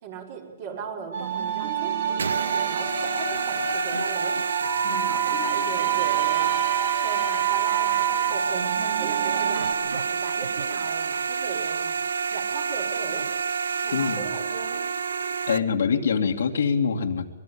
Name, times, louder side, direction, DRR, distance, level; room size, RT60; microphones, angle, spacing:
voice 1, 0.0-4.4 4.9-6.6 7.0-12.0 12.3-13.3 13.8-14.9, right 6 dB, 50° right, 1 dB, 5.7 m, -38 dB
sound 1, 1.1-9.7, right 8 dB, 70° right, 3.8 m, -27 dB
sound 2, 2.2-15.6, right 5 dB, 90° right, 0.8 m, -28 dB
voice 2, 13.9-14.3 15.5-17.3, left 6 dB, 80° left, 1 dB, 2.4 m, -24 dB
24.0 x 21.5 x 8.6 m, 1.2 s
hypercardioid pair, 145°, 0 cm